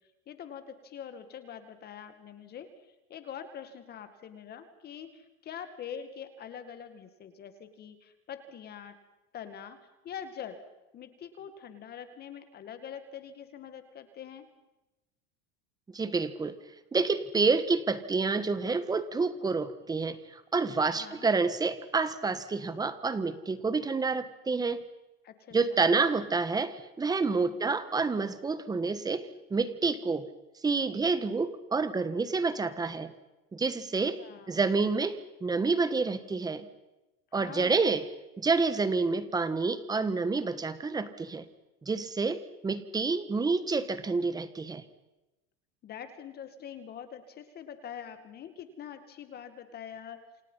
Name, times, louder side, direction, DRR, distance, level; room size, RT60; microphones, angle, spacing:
voice 1, 0.3-9.0 9.3-9.8 10.0-10.6 10.9-14.5 20.9-21.3 25.2-25.8 27.4-27.7 34.0-34.6 37.4-38.0 45.8-50.2, left 8 dB, 35° left, 9 dB, 2.1 m, -44 dB
voice 2, 15.9-16.5 16.9-24.8 25.5-30.3 30.6-33.1 33.5-34.2 34.5-36.7 37.3-38.0 38.4-41.5 41.8-44.8, right 4 dB, 15° right, 13 dB, 1.5 m, -28 dB
28.0 x 27.0 x 5.7 m, 1.0 s
supercardioid pair, 140°, 30 cm